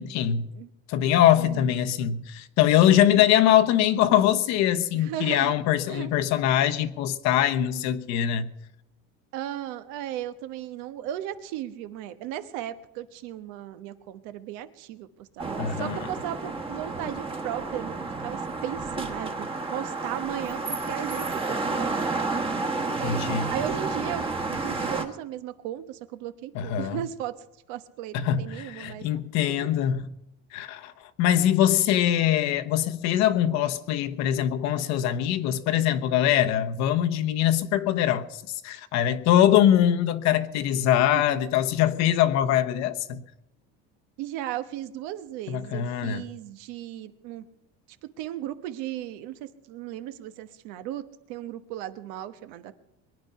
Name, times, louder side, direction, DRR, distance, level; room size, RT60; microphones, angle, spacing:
voice 1, 0.0-0.5 0.9-8.5 15.6-16.1 23.0-23.5 26.5-27.0 28.1-30.1 30.5-30.9 31.2-43.2 45.5-46.2, left 11 dB, 65° left, 1.1 m, -23 dB
voice 2, 1.4-1.7 3.1-3.2 4.9-5.6 5.9-6.1 9.3-21.9 22.7-27.3 27.7-29.2 29.5-29.7 41.1-41.4 44.2-47.5 48.0-51.0 51.3-52.7, right 12 dB, 80° right, 1.2 m, -36 dB
sound 1, 15.4-25.1, right 3 dB, 20° right, 1.3 m, -30 dB
22.5 x 9.7 x 5.6 m
cardioid pair, 135°, 30 cm